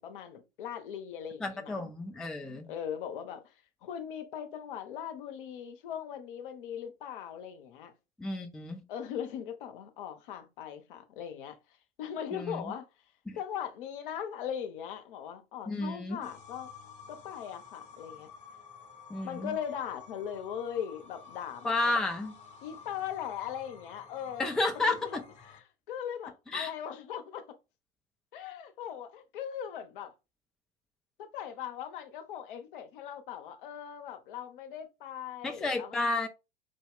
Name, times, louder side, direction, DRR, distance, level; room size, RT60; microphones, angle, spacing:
voice 1, 0.0-1.9 2.4-7.9 8.9-12.9 13.4-16.7 17.1-18.3 19.2-22.0 22.6-27.6 28.3-30.1 31.2-36.1, left 9 dB, 55° left, 0.8 m, -40 dB
voice 2, 1.4-2.7 8.2-8.8 12.3-12.7 13.3-13.4 15.7-16.2 19.1-19.6 21.6-22.3 24.4-25.2 26.5-26.7 35.4-36.3, left 2 dB, ahead, 0.4 m, -31 dB
sound 1, 16.2-25.6, left 5 dB, 25° left, 0.9 m, -51 dB
5.3 x 2.3 x 3.5 m
figure-of-eight pair, 85°, 31 cm